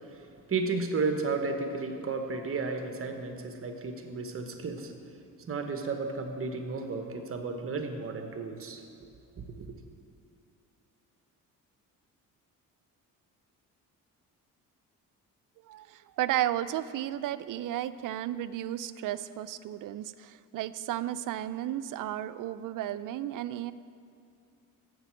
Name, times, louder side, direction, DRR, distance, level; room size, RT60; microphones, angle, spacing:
voice 1, 0.1-4.9 5.5-8.8 9.6-9.7, right 4 dB, 40° right, 5 dB, 1.1 m, -33 dB
voice 2, 15.6-23.7, right 12 dB, 65° right, 13 dB, 0.5 m, -33 dB
7.9 x 6.7 x 7.6 m, 2.4 s
cardioid pair, 95°, 35 cm